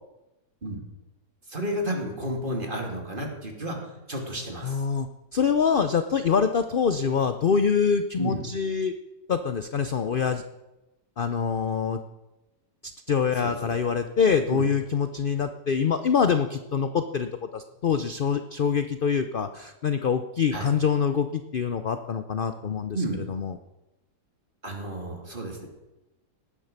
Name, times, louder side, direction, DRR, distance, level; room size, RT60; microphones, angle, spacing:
voice 1, 1.5-4.8 8.2-8.4 13.4-13.8 14.5-14.6 20.5-20.7 22.9-23.2 24.6-25.7, right 1 dB, 30° right, 1 dB, 2.8 m, -32 dB
voice 2, 4.6-8.9 9.3-10.4 11.2-12.0 13.1-23.0 23.3-23.6, left 6 dB, 60° left, 9 dB, 0.5 m, -25 dB
18.0 x 10.0 x 6.6 m, 1.0 s
omnidirectional pair, 1.8 m